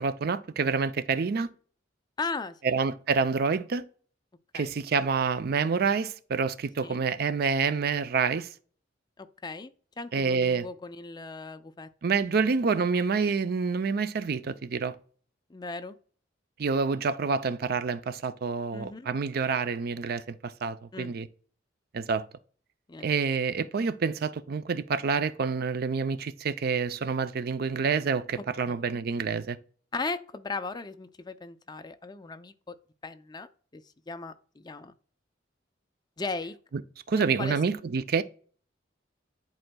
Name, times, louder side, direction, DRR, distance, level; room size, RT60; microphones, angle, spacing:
voice 1, 0.0-1.5 2.6-3.8 4.5-8.5 10.1-10.7 12.0-14.9 16.6-21.3 21.9-22.3 23.0-29.6 37.1-38.2, right 5 dB, 55° right, 0.5 m, -27 dB
voice 2, 2.2-2.6 4.5-4.7 6.8-7.0 9.2-11.9 15.5-16.0 18.7-19.1 20.9-21.1 22.9-23.1 28.3-28.8 29.9-32.7 33.0-34.9 36.2-36.6 37.2-37.6, left 3 dB, 20° left, 0.4 m, -37 dB
10.5 x 4.3 x 2.3 m
head